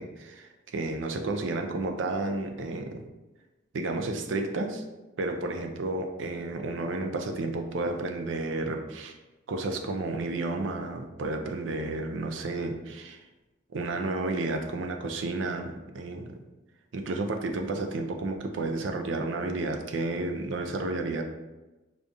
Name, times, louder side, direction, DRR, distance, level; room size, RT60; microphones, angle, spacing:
voice 1, 0.0-3.0 3.7-4.8 5.2-9.1 9.5-13.2 13.7-16.4 16.9-21.2, right 2 dB, 85° right, 4 dB, 0.5 m, -31 dB
5.0 x 2.4 x 2.6 m, 1.1 s
head